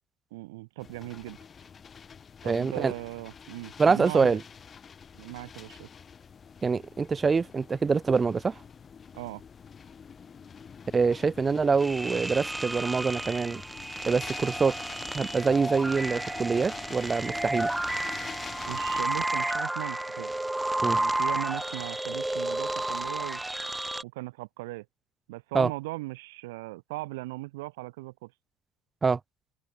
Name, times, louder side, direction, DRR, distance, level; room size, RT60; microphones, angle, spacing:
voice 1, 0.3-1.4 2.4-4.4 5.2-5.9 9.1-9.4 18.7-20.3 20.9-23.4 24.0-24.8 25.3-28.3, right 21 dB, 70° right, 5.1 m, -38 dB
sound 1, 0.8-19.1, left 6 dB, 30° left, 6.8 m, -46 dB
voice 2, 2.5-2.9 3.8-4.4 6.6-8.6 10.9-13.6 14.1-14.7 15.1-17.7 20.8-21.0 25.5-25.7 29.0-29.2, right 5 dB, 25° right, 2.1 m, -25 dB
sound 2, 11.8-24.0, right 1 dB, 10° right, 1.0 m, -32 dB
open air
figure-of-eight pair, 65°, 0 cm